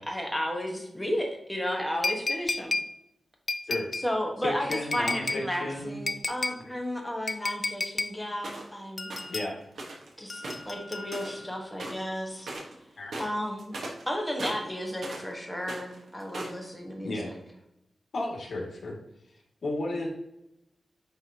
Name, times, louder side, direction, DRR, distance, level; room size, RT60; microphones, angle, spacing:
voice 1, 0.1-2.8 4.0-9.1 10.2-12.5 13.2-13.8 14.1-17.4, left 1 dB, 5° left, 1 dB, 1.4 m, -33 dB
sound 1, 2.0-2.9 3.5-4.1 4.7-5.4 6.1-6.6 7.3-8.1 9.0-9.5 10.3-11.5 12.5-12.6, left 3 dB, 35° left, 0.3 m, -32 dB
voice 2, 4.4-6.0 9.3-9.6 13.0-13.2 17.0-17.3 18.1-19.0 19.6-20.1, left 2 dB, 70° left, -2 dB, 2.3 m, -33 dB
sound 2, 8.4-8.7 9.1-9.3 9.8-10.1 10.4-11.5 11.8-12.1 12.4-12.7 13.1-15.3 15.6-16.6, right 2 dB, 85° right, 1.4 m, -38 dB
9.6 x 3.5 x 2.9 m, 0.83 s
wide cardioid pair, 125°, 0 cm